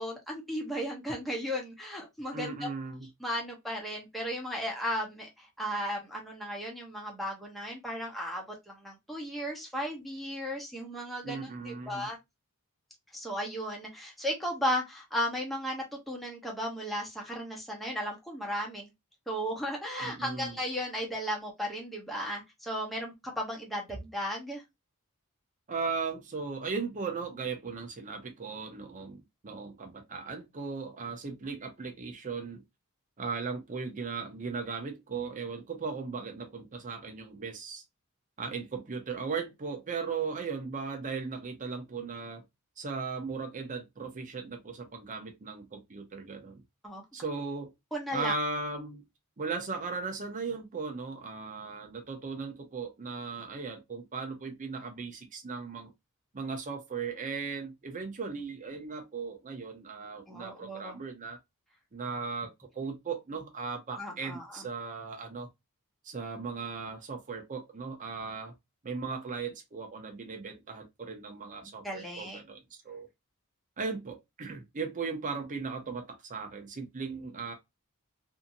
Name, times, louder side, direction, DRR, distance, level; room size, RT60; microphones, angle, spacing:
voice 1, 0.0-2.7 3.2-12.2 13.1-18.9 19.3-24.6 46.8-47.0 47.9-48.3 60.3-61.0 64.0-64.6 71.6-72.4, equal, ahead, 0.8 m, -35 dB
voice 2, 2.3-3.1 11.2-12.1 20.0-20.5 25.7-32.6 33.2-37.8 38.4-42.4 42.8-46.6 47.1-47.7 48.1-49.0 49.4-55.9 56.3-61.4 61.9-65.5 66.0-68.5 68.8-73.1 73.8-77.5, right 4 dB, 35° right, 0.6 m, -37 dB
2.7 x 2.6 x 2.6 m
head